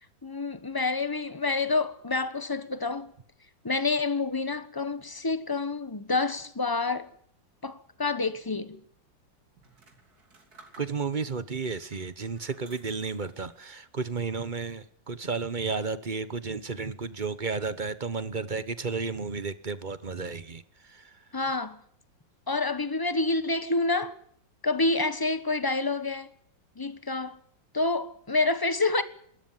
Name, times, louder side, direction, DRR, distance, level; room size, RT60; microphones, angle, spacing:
voice 1, 0.2-3.1 3.6-7.1 7.6-8.8 21.3-21.8 22.5-24.2 24.6-26.3 26.8-27.4 27.7-29.0, left 3 dB, 15° left, 0.8 m, -28 dB
sound 1, 9.6-11.3 11.9-13.7 14.1-14.7, right 3 dB, 50° right, 3.7 m, -57 dB
voice 2, 10.8-21.2, right 4 dB, 35° right, 0.9 m, -33 dB
28.5 x 13.5 x 9.1 m
omnidirectional pair, 2.0 m